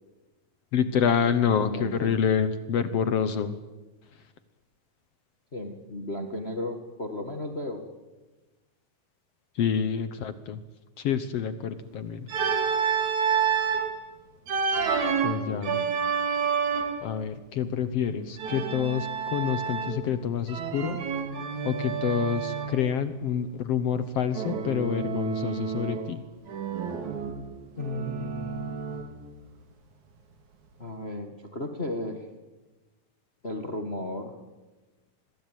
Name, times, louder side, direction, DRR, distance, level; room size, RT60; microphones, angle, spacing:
voice 1, 0.7-3.6 9.5-10.6 11.0-12.3 15.2-15.8 17.0-21.0 21.6-26.2, left 7 dB, 65° left, 12 dB, 1.6 m, -27 dB
voice 2, 1.6-2.2 5.5-7.8 14.8-16.1 27.8-28.9 30.8-32.3 33.4-34.4, left 1 dB, 30° left, 6 dB, 1.1 m, -35 dB
Organ, 12.3-13.9 14.5-17.1 18.4-20.1 20.5-22.8 24.3-26.2 26.5-29.2, right 6 dB, 60° right, 3.5 m, -29 dB
25.0 x 21.5 x 9.2 m, 1.2 s
omnidirectional pair, 4.0 m